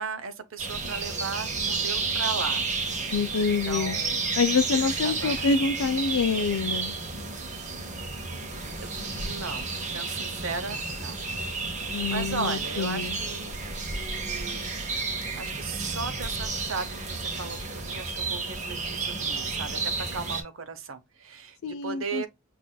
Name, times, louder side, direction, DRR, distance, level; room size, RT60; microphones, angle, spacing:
voice 1, 0.0-2.6 3.4-4.4 4.7-5.5 8.8-11.2 11.8-14.8 15.4-22.3, right 5 dB, 65° right, 0.9 m, -37 dB
sound 1, 0.6-20.4, right 4 dB, 35° right, 1.0 m, -31 dB
voice 2, 3.1-4.0 4.4-6.9 11.9-13.2 21.6-22.3, left 5 dB, 75° left, 0.4 m, -26 dB
5.9 x 2.5 x 2.2 m
head